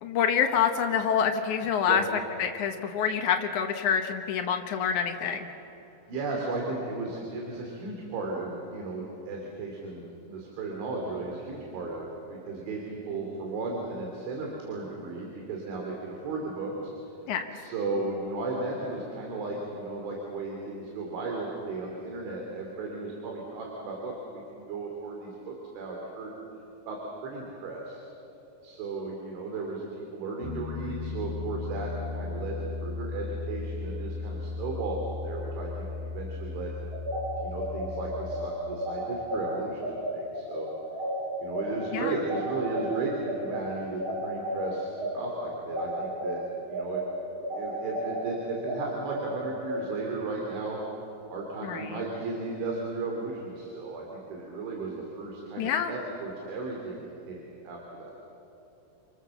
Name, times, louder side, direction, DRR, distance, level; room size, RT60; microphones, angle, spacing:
voice 1, 0.0-2.0 2.4-5.5 17.3-17.4 41.9-42.2 51.6-52.0 55.6-55.9, left 7 dB, 80° left, 4 dB, 1.7 m, -26 dB
voice 2, 5.9-16.9 17.5-26.3 26.9-28.0 28.6-32.6 32.8-36.7 37.4-40.7 41.4-46.4 46.7-47.0 47.4-50.8 51.3-58.1, right 3 dB, 80° right, -1 dB, 5.3 m, -35 dB
Piano, 30.4-38.5, left 4 dB, 65° left, 2.9 m, -36 dB
sound 1, 36.9-46.3 46.7-49.8, right 1 dB, 35° right, 7.3 m, -33 dB
29.5 x 25.0 x 7.1 m, 2.9 s
omnidirectional pair, 5.4 m